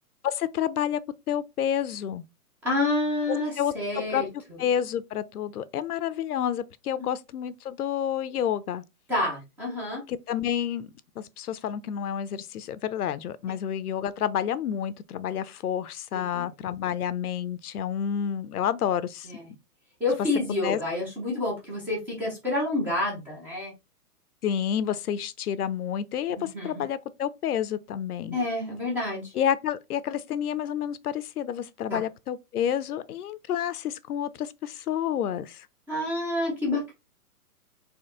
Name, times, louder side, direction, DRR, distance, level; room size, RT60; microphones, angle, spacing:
voice 1, 0.2-1.0 1.3-2.2 3.3-3.7 4.1-4.2 4.6-8.8 10.1-10.9 11.2-19.3 20.6-20.8 24.4-28.4 29.3-35.7, left 9 dB, 70° left, 0.7 m, -29 dB
voice 2, 2.6-4.6 7.0-7.1 9.1-10.0 16.3-16.5 20.0-23.7 26.4-26.7 28.3-29.3 31.9-32.0 35.9-36.9, left 2 dB, 5° right, 0.5 m, -28 dB
4.4 x 2.8 x 3.8 m
hypercardioid pair, 150°, 46 cm